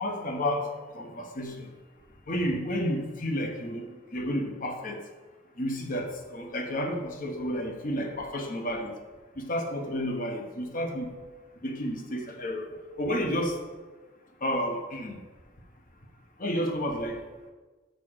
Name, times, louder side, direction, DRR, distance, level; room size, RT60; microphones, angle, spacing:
voice 1, 0.0-1.7 2.3-5.0 5.6-8.9 9.4-11.1 11.6-12.7 13.0-13.6 14.4-15.2 16.4-17.2, equal, 45° left, 4 dB, 1.1 m, -31 dB
6.7 x 4.9 x 6.5 m, 1.3 s
head